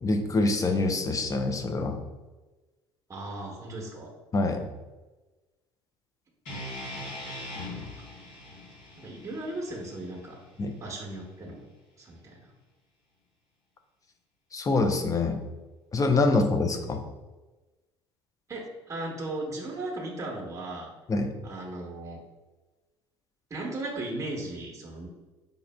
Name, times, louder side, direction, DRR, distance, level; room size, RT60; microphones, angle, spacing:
voice 1, 0.0-2.0 4.3-4.6 10.6-10.7 14.5-15.4 15.9-17.0 21.1-21.3, left 3 dB, 25° left, 5 dB, 0.5 m, -25 dB
voice 2, 3.1-4.1 7.3-7.6 8.0-8.1 9.0-10.4 10.8-11.6 12.0-12.4 18.5-20.9 21.4-22.2 23.5-25.1, right 2 dB, 20° right, -1 dB, 1.0 m, -37 dB
sound 1, 6.5-10.6, left 1 dB, 60° left, 1.1 m, -41 dB
5.1 x 2.4 x 2.2 m, 1.2 s
figure-of-eight pair, 60°, 14 cm